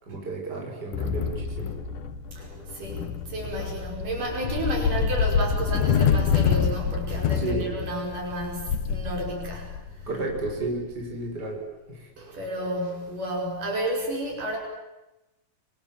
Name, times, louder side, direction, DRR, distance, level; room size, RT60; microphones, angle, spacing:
voice 1, 0.0-1.8 7.3-7.7 10.1-12.1, right 2 dB, 25° right, 0 dB, 6.4 m, -32 dB
sound 1, 0.9-11.1, left 7 dB, 65° left, 2.6 m, -27 dB
voice 2, 2.3-10.2 12.2-14.6, right 1 dB, 55° right, 0 dB, 7.0 m, -32 dB
29.0 x 26.5 x 7.5 m, 0.99 s
omnidirectional pair, 4.4 m